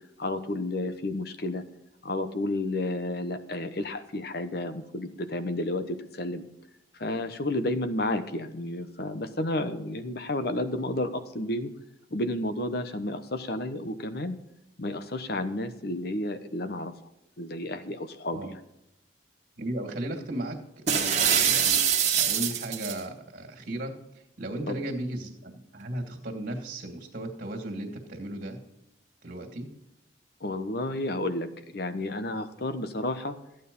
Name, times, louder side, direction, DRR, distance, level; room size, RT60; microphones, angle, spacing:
voice 1, 0.2-1.6 2.0-6.4 6.9-11.7 12.1-14.4 14.8-16.9 17.4-18.6 24.7-24.8 30.4-33.3, left 1 dB, 55° left, 10 dB, 1.0 m, -31 dB
voice 2, 19.6-21.8 22.1-23.9 24.4-28.6 29.2-29.7, right 1 dB, 55° right, 0 dB, 2.3 m, -35 dB
sound 1, 20.9-23.0, right 8 dB, 40° right, 1.8 m, -24 dB
14.5 x 9.2 x 5.4 m, 0.85 s
head